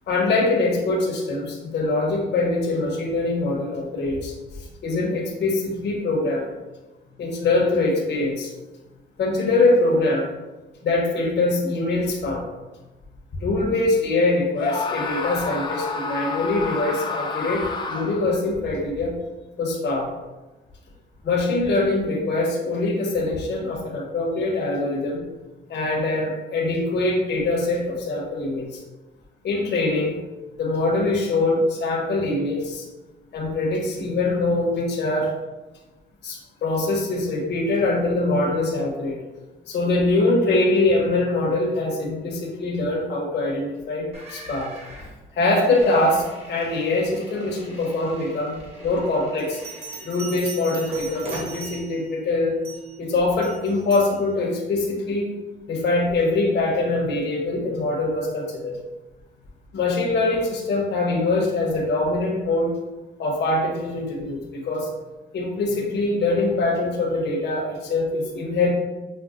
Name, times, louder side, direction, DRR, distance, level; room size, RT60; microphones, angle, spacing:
voice 1, 0.1-6.4 7.2-8.5 9.2-10.3 10.8-12.4 13.4-19.1 19.6-20.1 21.2-25.2 25.7-28.8 29.4-30.2 30.6-32.9 33.3-35.3 36.2-39.2 39.7-44.7 45.3-49.6 50.0-52.5 53.0-55.3 55.7-58.8 59.7-62.7 63.2-64.9 65.3-68.7, left 2 dB, 60° left, -2 dB, 0.8 m, -23 dB
Screaming, 14.6-18.4, left 4 dB, 25° left, 0.4 m, -29 dB
sound 1, 44.1-50.4 50.8-51.6, right 1 dB, 30° right, 1.0 m, -42 dB
Bell, 49.4-52.1 52.6-53.0 53.4-54.1, right 5 dB, 45° right, 1.2 m, -39 dB
5.1 x 2.2 x 2.4 m, 1.1 s
cardioid pair, 90°, 20 cm